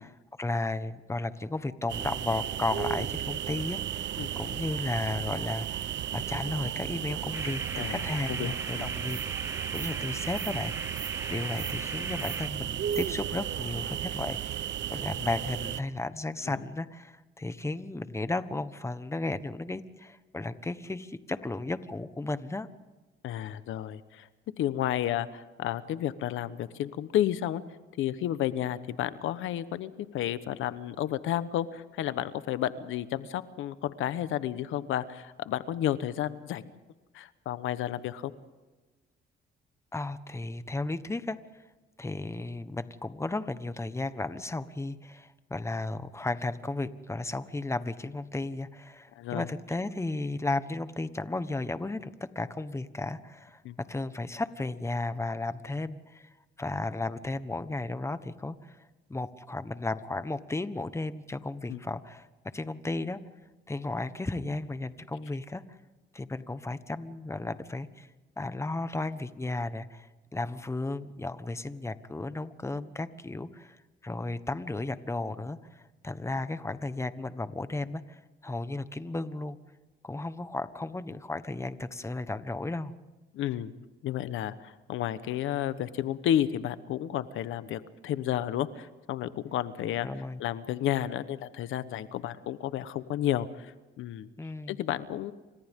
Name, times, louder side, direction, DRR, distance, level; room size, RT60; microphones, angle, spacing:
voice 1, 0.0-4.1 4.3-10.7 11.3-22.7 39.9-41.4 42.0-56.3 56.6-58.8 59.1-62.3 62.5-63.2 63.7-65.6 66.1-68.1 68.4-73.8 74.0-79.6 80.0-82.9 90.0-90.4 94.4-94.8, left 2 dB, 15° left, 12 dB, 1.3 m, -34 dB
sound 1, 1.9-15.8, right 10 dB, 65° right, 0.8 m, -34 dB
sound 2, 7.3-12.5, right 2 dB, 15° right, 1.6 m, -40 dB
voice 2, 8.3-8.9 16.5-16.6 23.2-24.3 24.6-27.6 28.0-36.6 37.1-38.3 49.2-49.5 53.6-53.8 61.7-61.8 83.3-83.7 84.0-90.1 90.4-94.3 94.7-95.3, left 11 dB, 85° left, 13 dB, 1.1 m, -31 dB
29.5 x 26.0 x 3.7 m, 1.2 s
cardioid pair, 90°, 20 cm